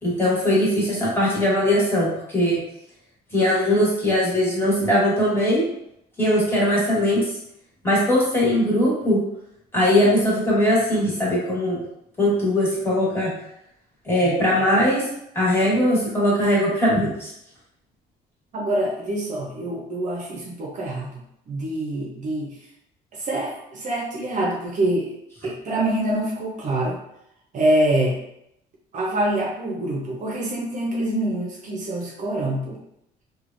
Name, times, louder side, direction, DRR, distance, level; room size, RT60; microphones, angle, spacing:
voice 1, 0.0-2.6 3.3-5.6 6.2-7.2 7.8-9.2 9.7-11.8 12.2-13.3 14.0-15.0 15.3-17.3, left 1 dB, 15° left, -7 dB, 1.4 m, -20 dB
voice 2, 18.5-22.6 23.1-25.1 25.4-27.0 27.5-28.2 28.9-32.8, right 1 dB, 45° right, -2 dB, 0.6 m, -25 dB
3.2 x 2.3 x 2.5 m, 0.78 s
cardioid pair, 110°, 17 cm